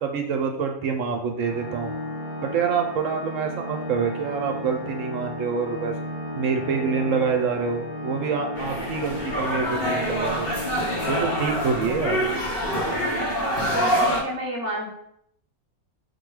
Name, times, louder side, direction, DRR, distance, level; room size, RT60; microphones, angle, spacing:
voice 1, 0.0-2.0 2.4-5.9 6.3-10.5 11.1-12.2, right 6 dB, 70° right, 3 dB, 0.9 m, -26 dB
Organ, 1.4-12.2, left 1 dB, 90° left, 1.9 m, -34 dB
sound 1, 8.5-14.2, equal, 50° left, 0.9 m, -26 dB
voice 2, 13.3-14.9, right 1 dB, 20° left, -4 dB, 0.4 m, -31 dB
4.8 x 2.2 x 4.6 m, 0.72 s
omnidirectional pair, 1.6 m